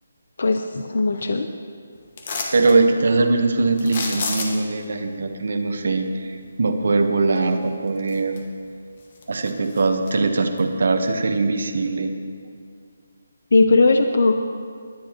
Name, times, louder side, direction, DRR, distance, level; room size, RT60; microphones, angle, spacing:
voice 1, 0.4-1.5 13.5-14.3, left 3 dB, 55° left, 7 dB, 0.6 m, -18 dB
sound 1, 2.2-2.8 3.8-4.8 7.4-7.5 8.0-8.7 9.0-10.1 10.6-10.7, left 3 dB, 30° left, 1.2 m, -30 dB
voice 2, 2.5-8.4 9.3-12.1, right 3 dB, 55° right, 6 dB, 1.0 m, -21 dB
19.5 x 10.5 x 2.9 m, 2.2 s
hypercardioid pair, 175°, 0 cm